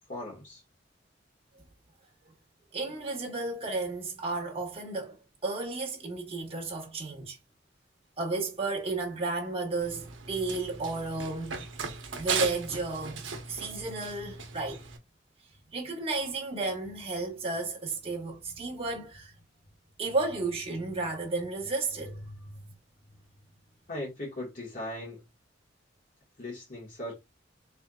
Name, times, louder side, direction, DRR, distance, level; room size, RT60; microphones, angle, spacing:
voice 1, 0.1-0.6 23.9-25.2 26.4-27.2, left 1 dB, 45° left, 1.5 m, -38 dB
voice 2, 2.7-5.2 5.4-7.4 8.2-11.6 12.1-14.8 15.7-19.3 20.0-22.6, right 3 dB, 30° right, 1.3 m, -33 dB
Run, 9.8-15.0, right 5 dB, 85° right, 0.9 m, -37 dB
4.3 x 3.4 x 2.3 m
head